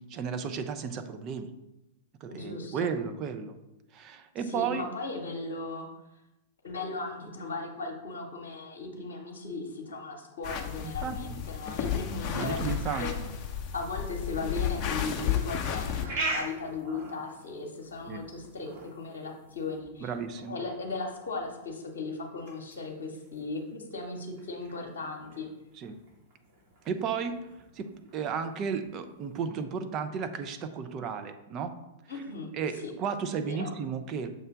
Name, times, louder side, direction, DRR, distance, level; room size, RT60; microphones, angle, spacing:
voice 1, 0.1-1.5 2.2-3.5 3.9-4.9 11.0-11.2 12.3-13.1 18.1-18.2 20.0-20.6 25.8-26.0 26.9-27.4 27.8-27.9 28.1-31.7 32.6-34.3, right 6 dB, 35° right, 8 dB, 0.6 m, -33 dB
voice 2, 2.3-2.9 4.5-5.9 6.6-13.1 13.7-20.1 20.5-25.5 32.1-32.5 32.8-32.9 33.4-33.7, left 3 dB, 60° left, 1 dB, 0.9 m, -37 dB
sound 1, 10.4-16.1, left 8 dB, 35° left, 0.7 m, -32 dB
sound 2, 15.4-29.4, right 2 dB, 50° right, 2.1 m, -43 dB
6.5 x 3.3 x 5.8 m, 0.94 s
figure-of-eight pair, 95°, 0 cm